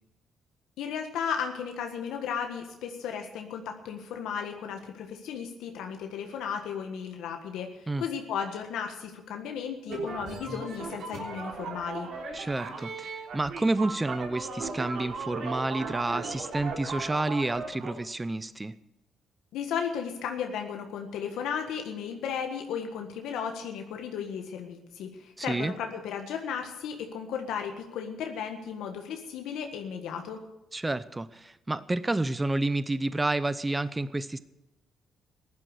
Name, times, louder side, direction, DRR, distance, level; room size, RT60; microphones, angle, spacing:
voice 1, 0.8-12.1 19.5-30.4, left 7 dB, 85° left, 4 dB, 1.6 m, -35 dB
sound 1, 9.9-17.9, right 4 dB, 70° right, 3.3 m, -37 dB
voice 2, 12.3-18.7 25.4-25.7 30.7-34.4, right 2 dB, 15° right, 15 dB, 0.7 m, -29 dB
15.0 x 11.5 x 6.6 m, 0.95 s
cardioid pair, 90°, 0 cm